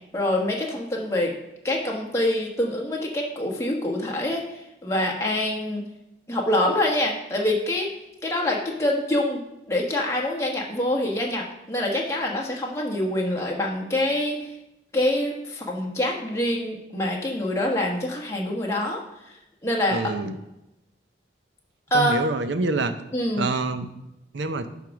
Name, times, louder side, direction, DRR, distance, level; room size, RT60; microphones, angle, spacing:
voice 1, 0.1-1.3 1.6-5.8 6.3-7.9 8.2-9.4 9.7-14.5 14.9-19.3 19.6-20.0 21.9-22.1 23.1-23.5, left 1 dB, 15° left, -1 dB, 1.3 m, -25 dB
voice 2, 19.9-20.4 21.9-23.0 23.4-23.9 24.3-24.7, right 2 dB, 80° right, 10 dB, 0.6 m, -26 dB
10.5 x 3.6 x 6.1 m, 0.90 s
head